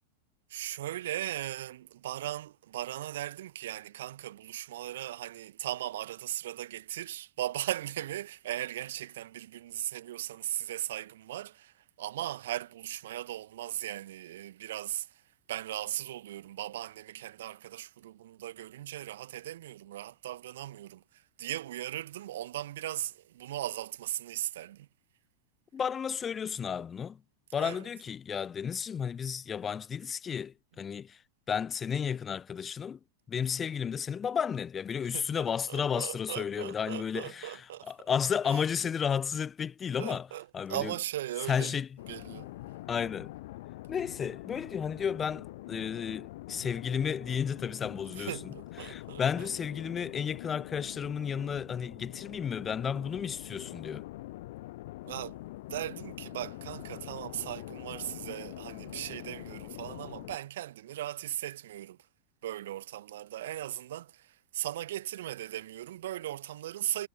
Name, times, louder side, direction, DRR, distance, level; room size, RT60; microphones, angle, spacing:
voice 1, 0.5-15.2 15.5-21.0 21.4-24.9 27.6-27.8 35.1-37.9 38.4-38.6 40.0-41.7 42.1-42.5 48.2-49.5 55.0-55.4 55.7-62.0 62.4-67.1, right 13 dB, 60° right, 1.0 m, -38 dB
voice 2, 25.7-27.2 27.5-31.2 31.5-33.0 33.3-40.3 40.5-40.9 41.5-41.9 42.9-43.3 43.9-48.5 48.8-54.0, left 7 dB, 20° left, 0.4 m, -33 dB
sound 1, 42.0-60.4, left 17 dB, 55° left, 0.8 m, -44 dB
figure-of-eight pair, 90°, 0 cm